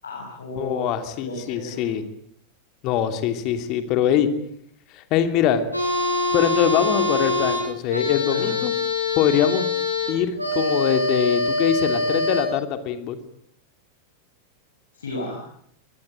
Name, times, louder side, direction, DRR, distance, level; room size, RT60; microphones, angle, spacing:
voice 1, 0.0-0.8 1.1-1.9 8.3-8.5 14.9-15.4, left 2 dB, 70° left, 0 dB, 6.7 m, -33 dB
voice 2, 0.6-2.0 2.8-4.3 4.9-5.6 6.3-8.7 9.2-9.7 10.1-13.2, left 9 dB, 40° left, 8 dB, 2.9 m, -23 dB
sound 1, 5.7-12.4, left 2 dB, 85° left, 7.6 m, -24 dB
24.0 x 20.5 x 9.1 m, 0.70 s
figure-of-eight pair, 90°, 0 cm